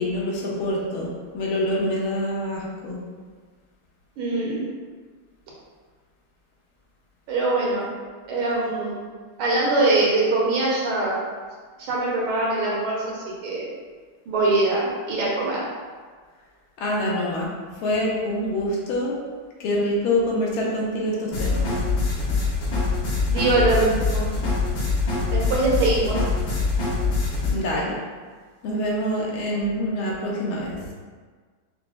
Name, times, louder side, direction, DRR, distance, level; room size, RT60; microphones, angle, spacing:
voice 1, 0.0-3.0 16.8-17.5 17.8-19.2 19.6-21.7 27.5-28.0 28.6-30.8, left 1 dB, 85° left, -3 dB, 1.5 m, -25 dB
voice 2, 4.2-4.7 7.3-7.9 8.3-9.0 9.4-11.2 11.8-13.7 14.3-15.6 23.2-24.3 25.3-26.2, right 2 dB, 80° right, -4 dB, 1.7 m, -23 dB
sound 1, 21.3-27.5, left 3 dB, 65° left, 1.5 m, -24 dB
5.5 x 2.0 x 2.4 m, 1.5 s
omnidirectional pair, 2.2 m